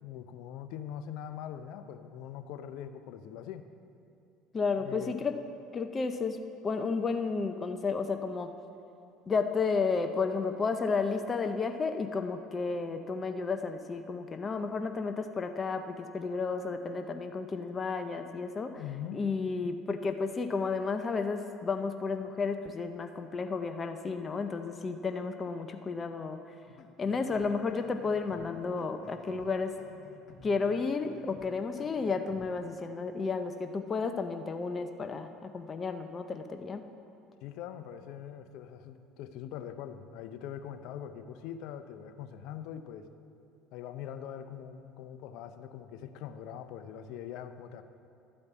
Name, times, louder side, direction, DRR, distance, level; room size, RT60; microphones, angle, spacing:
voice 1, 0.0-3.7 4.8-5.2 18.8-19.2 37.4-43.1 43.7-47.8, left 9 dB, 70° left, 9 dB, 0.6 m, -42 dB
voice 2, 4.5-5.3 5.7-6.4 6.6-8.5 9.3-18.8 19.1-26.4 27.0-29.7 30.4-36.8, left 4 dB, 30° left, 7 dB, 0.6 m, -32 dB
sound 1, 26.7-32.8, left 5 dB, 50° left, 1.0 m, -54 dB
12.5 x 5.2 x 8.3 m, 2.6 s
supercardioid pair, 90°, 0 cm